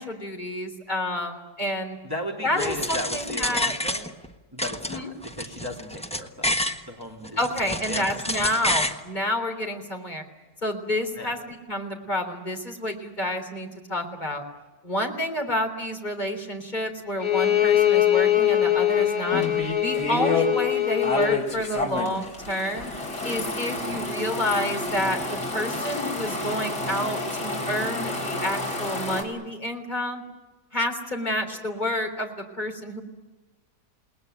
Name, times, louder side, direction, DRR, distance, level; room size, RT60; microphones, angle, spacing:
voice 1, 0.0-2.0 2.4-3.7 4.9-5.1 7.4-10.2 10.6-14.4 14.8-19.4 19.8-22.9 23.2-30.2 30.7-33.0, left 1 dB, 25° left, 4 dB, 3.8 m, -29 dB
voice 2, 2.0-4.1 4.5-8.1 11.2-11.3, left 1 dB, 15° right, 1 dB, 2.7 m, -36 dB
sound 1, 2.6-4.3 4.6-6.8 7.2-9.0, left 1 dB, 5° left, 1.1 m, -29 dB
Bowed string instrument, 17.2-21.5, left 12 dB, 60° left, 2.4 m, -22 dB
sound 2, 19.3-20.5 21.0-29.2, left 2 dB, 80° left, 4.5 m, -30 dB
29.5 x 19.5 x 9.2 m, 1.2 s
omnidirectional pair, 1.8 m